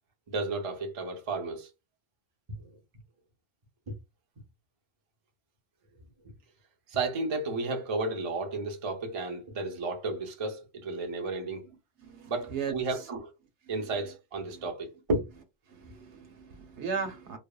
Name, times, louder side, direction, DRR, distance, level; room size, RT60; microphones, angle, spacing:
voice 1, 0.3-1.7 2.6-2.7 3.9-4.0 6.9-11.6 12.3-13.3 13.7-15.3, right 3 dB, 40° right, 0.5 m, -33 dB
voice 2, 12.0-12.7 14.5-14.6 15.7-17.4, right 6 dB, 65° right, 1.0 m, -36 dB
3.3 x 2.0 x 2.2 m
omnidirectional pair, 1.3 m